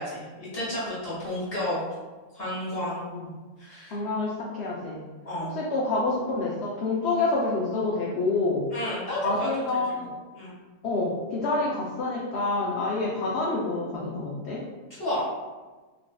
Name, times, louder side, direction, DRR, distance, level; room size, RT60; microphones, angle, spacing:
voice 1, 0.0-1.8 2.3-3.0 3.6-4.0 5.2-5.5 8.7-9.5 10.0-10.5 15.0-15.2, left 1 dB, 45° left, -9 dB, 1.4 m, -31 dB
voice 2, 3.9-5.0 5.5-8.6 9.2-10.1 10.8-14.6, left 3 dB, 65° left, -5 dB, 0.7 m, -27 dB
3.9 x 2.4 x 2.2 m, 1.3 s
omnidirectional pair, 1.5 m